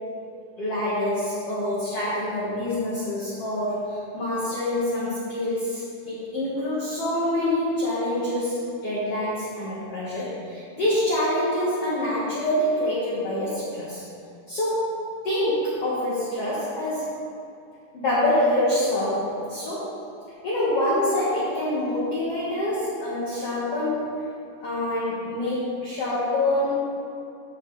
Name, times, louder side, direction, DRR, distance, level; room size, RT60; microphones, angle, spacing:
voice 1, 0.6-14.0 14.5-15.0 15.2-17.1 17.9-19.9 20.4-24.2 24.6-26.9, left 1 dB, 50° left, -9 dB, 2.1 m, -26 dB
14.0 x 5.2 x 4.0 m, 2.6 s
omnidirectional pair, 4.5 m